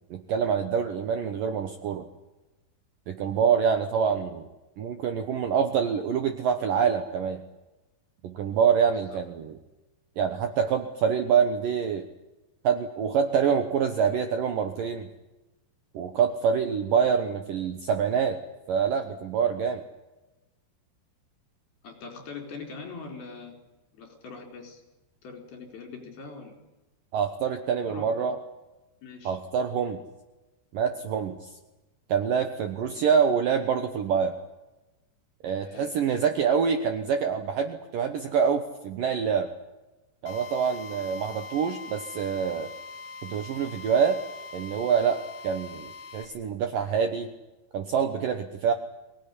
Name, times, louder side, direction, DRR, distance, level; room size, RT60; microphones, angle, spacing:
voice 1, 0.1-2.0 3.1-4.5 4.8-7.4 8.2-9.6 10.2-12.1 12.6-15.1 15.9-18.4 18.7-19.8 27.1-28.4 29.3-30.0 30.7-31.5 32.1-34.3 35.4-39.5 40.2-42.7 43.2-44.2 44.5-47.3 47.7-48.7, right 7 dB, 65° right, 7 dB, 2.3 m, -26 dB
voice 2, 21.8-23.5 23.9-24.8 25.2-26.5 27.8-28.3 29.0-29.4 35.6-35.9, left 4 dB, 55° left, 3 dB, 6.0 m, -42 dB
Drill, 40.3-46.3, left 4 dB, 40° left, 2.7 m, -42 dB
23.5 x 19.0 x 9.9 m, 1.1 s
omnidirectional pair, 5.3 m